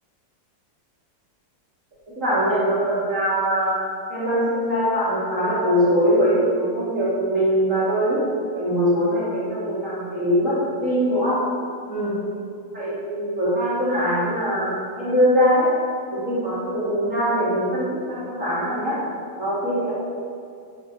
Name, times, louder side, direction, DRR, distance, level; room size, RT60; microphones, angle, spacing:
voice 1, 2.2-3.8 4.1-10.6 10.8-11.4 11.9-12.2 12.7-15.7 16.1-19.0 19.4-19.9, equal, 40° right, -9 dB, 2.9 m, -22 dB
10.5 x 6.1 x 6.3 m, 2.3 s
omnidirectional pair, 2.1 m